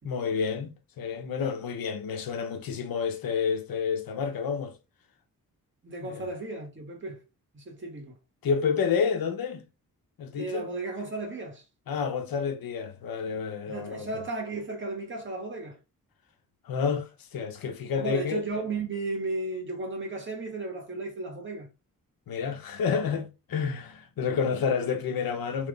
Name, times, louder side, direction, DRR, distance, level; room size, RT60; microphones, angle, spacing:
voice 1, 0.0-4.7 6.0-6.3 8.4-9.6 10.2-10.7 11.9-14.1 16.7-18.4 22.3-25.7, left 6 dB, 85° left, 0.9 m, -29 dB
voice 2, 5.8-7.2 7.5-8.1 10.4-11.6 13.7-15.8 18.0-21.7, right 3 dB, 35° right, 1.6 m, -34 dB
3.4 x 3.1 x 3.8 m
wide cardioid pair, 120°, 34 cm